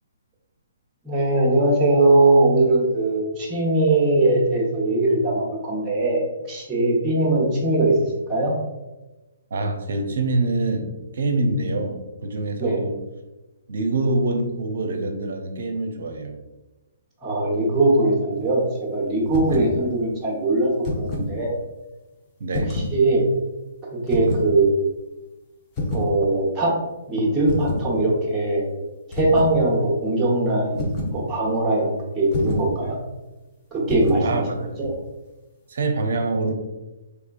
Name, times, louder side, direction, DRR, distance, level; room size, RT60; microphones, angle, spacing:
voice 1, 1.0-8.6 12.6-12.8 17.2-18.6 18.9-20.7 21.0-21.5 22.5-23.2 23.9-24.7 25.9-26.7 27.1-28.6 29.1-33.0 33.7-34.5 34.8-34.9, right 2 dB, 10° right, -3 dB, 1.0 m, -21 dB
voice 2, 9.5-13.0 13.7-16.4 19.4-19.6 22.4-22.8 34.2-34.6 35.7-36.5, right 2 dB, 60° right, 5 dB, 0.6 m, -25 dB
sound 1, 19.3-19.7 20.6-21.3 22.5-23.0 24.1-24.5 25.8-26.1 27.5-27.9 29.1-29.6 30.8-31.2 32.3-32.7 33.9-34.3, left 2 dB, 25° left, 0.8 m, -27 dB
3.4 x 3.3 x 2.4 m, 1.1 s
figure-of-eight pair, 130°, 0 cm